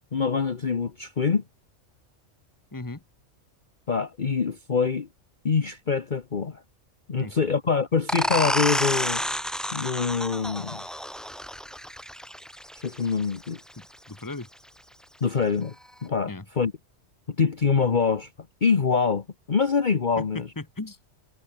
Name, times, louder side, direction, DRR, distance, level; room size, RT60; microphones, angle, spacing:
voice 1, 0.1-1.4 3.9-5.1 5.4-6.6 7.1-9.2 9.7-10.8 12.8-13.6 15.2-15.7 16.0-16.7 17.3-18.3 18.6-20.5, left 5 dB, 40° left, 1.2 m, -25 dB
voice 2, 2.7-3.0 7.2-7.5 13.8-14.5 16.1-16.4 20.2-21.0, left 2 dB, 15° left, 1.5 m, -38 dB
sound 1, 8.1-13.5, equal, ahead, 1.4 m, -29 dB
omnidirectional pair, 1.3 m